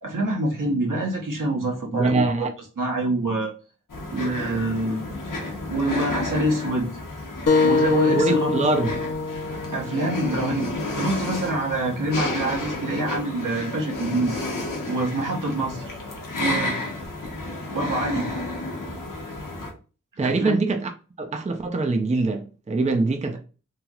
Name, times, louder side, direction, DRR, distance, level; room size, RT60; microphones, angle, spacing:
voice 1, 0.0-2.5 2.8-3.5 4.1-5.1 5.7-7.0 7.6-8.7 9.7-10.7 11.0-14.4 14.9-16.0 16.4-16.7 17.7-18.3 20.2-20.6, right 1 dB, 75° right, 1.0 m, -26 dB
voice 2, 1.9-2.5 8.1-8.9 20.2-20.9 21.2-23.4, right 3 dB, 20° right, 0.4 m, -23 dB
sound 1, 3.9-19.7, left 2 dB, 80° left, 0.8 m, -31 dB
sound 2, 7.5-12.6, left 4 dB, 50° left, 0.7 m, -25 dB
3.1 x 2.8 x 2.3 m
cardioid pair, 45°, 32 cm